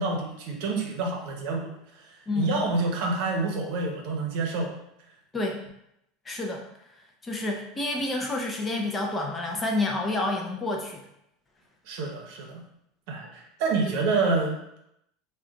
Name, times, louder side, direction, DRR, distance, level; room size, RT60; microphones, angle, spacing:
voice 1, 0.0-4.7 11.9-12.6 13.1-14.8, right 3 dB, 60° right, 1 dB, 0.8 m, -28 dB
voice 2, 2.3-2.6 5.3-5.6 6.3-6.6 7.2-11.0 13.8-13.9, left 2 dB, 15° left, 1 dB, 0.4 m, -29 dB
3.7 x 2.2 x 3.8 m, 0.80 s
supercardioid pair, 165°, 0 cm